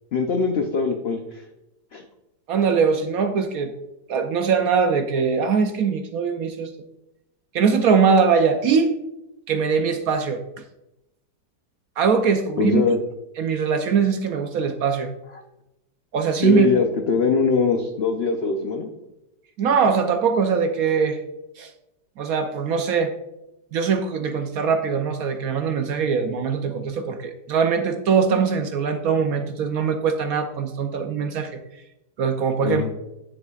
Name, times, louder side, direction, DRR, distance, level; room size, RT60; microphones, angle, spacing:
voice 1, 0.1-1.5 1.9-2.0 12.6-13.0 16.4-18.9 32.6-32.9, left 4 dB, 75° left, 4 dB, 0.5 m, -22 dB
voice 2, 2.5-3.7 4.1-6.7 7.5-8.9 9.5-10.4 12.0-12.8 13.4-15.1 16.1-16.7 19.6-21.2 21.6-21.7 22.2-23.1 23.7-31.5 32.2-32.8, right 6 dB, 70° right, 7 dB, 0.9 m, -21 dB
9.8 x 7.2 x 2.4 m, 0.90 s
omnidirectional pair, 1.9 m